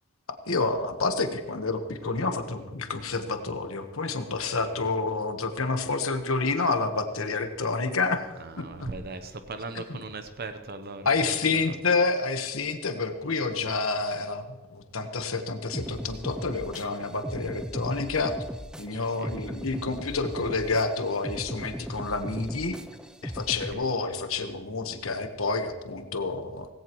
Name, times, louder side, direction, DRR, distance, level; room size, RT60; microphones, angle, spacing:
voice 1, 0.5-8.2 8.6-8.9 9.9-10.0 11.0-14.4 14.7-18.3 18.8-22.8 23.2-26.7, left 3 dB, 80° left, 7 dB, 1.3 m, -28 dB
voice 2, 8.4-11.7 19.2-19.4 23.7-23.9, right 3 dB, 50° right, 8 dB, 0.8 m, -39 dB
sound 1, 15.7-23.7, equal, 5° right, 0.4 m, -38 dB
18.0 x 17.0 x 3.1 m, 1.3 s
head